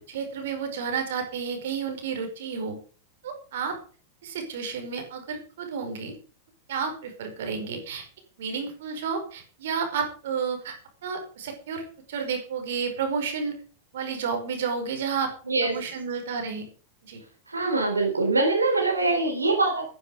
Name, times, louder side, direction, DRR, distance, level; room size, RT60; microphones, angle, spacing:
voice 1, 0.0-2.8 3.2-3.8 4.2-6.1 6.7-8.0 8.4-10.8 11.0-13.5 13.9-15.3 15.6-16.7 17.0-17.2, right 6 dB, 60° right, 5 dB, 5.1 m, -31 dB
voice 2, 15.5-15.8 17.5-19.9, right 3 dB, 80° right, 2 dB, 3.9 m, -23 dB
14.0 x 12.5 x 5.2 m, 0.39 s
figure-of-eight pair, 90°, 0 cm